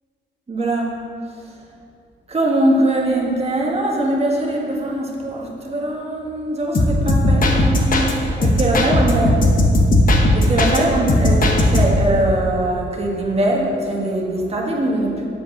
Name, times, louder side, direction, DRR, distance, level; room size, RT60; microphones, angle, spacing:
voice 1, 0.5-0.9 2.3-9.4 10.3-15.3, right 1 dB, 30° right, -1 dB, 1.6 m, -21 dB
sound 1, 6.7-8.1 8.4-10.8 11.1-12.1, left 1 dB, 45° left, 1.1 m, -16 dB
7.9 x 5.1 x 6.3 m, 2.4 s
cardioid pair, 100°, 20 cm